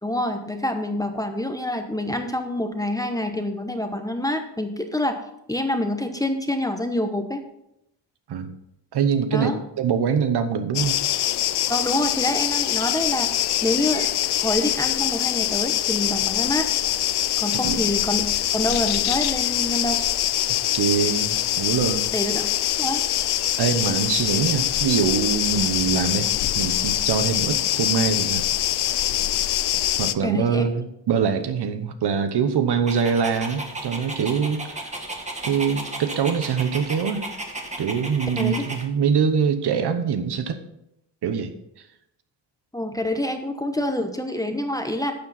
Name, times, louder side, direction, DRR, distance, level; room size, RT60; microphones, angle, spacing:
voice 1, 0.0-5.2 5.5-7.4 9.3-9.6 11.7-14.1 14.4-16.7 17.4-18.2 18.5-20.0 22.1-22.5 22.8-23.0 30.2-30.7 38.4-38.6 42.7-45.1, left 1 dB, 10° left, 6 dB, 0.9 m, -26 dB
voice 2, 8.9-9.5 9.8-11.0 17.6-17.8 20.7-22.1 23.6-28.4 30.0-34.9 35.4-37.3 37.8-40.6 41.2-41.5, right 6 dB, 65° right, 9 dB, 1.1 m, -23 dB
sound 1, 10.7-30.1, left 13 dB, 60° left, 0.6 m, -24 dB
Dog, 32.9-38.8, right 2 dB, 15° right, 1.5 m, -34 dB
11.5 x 7.5 x 4.1 m, 0.83 s
cardioid pair, 125°, 43 cm